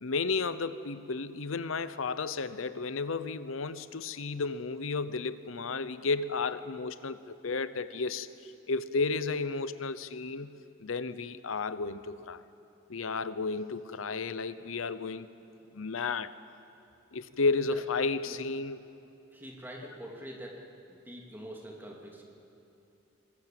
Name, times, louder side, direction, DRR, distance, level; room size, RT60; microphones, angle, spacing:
voice 1, 0.0-12.4 12.9-15.3 15.7-16.3 17.1-18.8, left 4 dB, 85° left, 14 dB, 0.8 m, -33 dB
voice 2, 19.3-20.6 20.9-22.2, equal, 10° right, -1 dB, 2.9 m, -45 dB
25.5 x 22.0 x 7.7 m, 2.8 s
head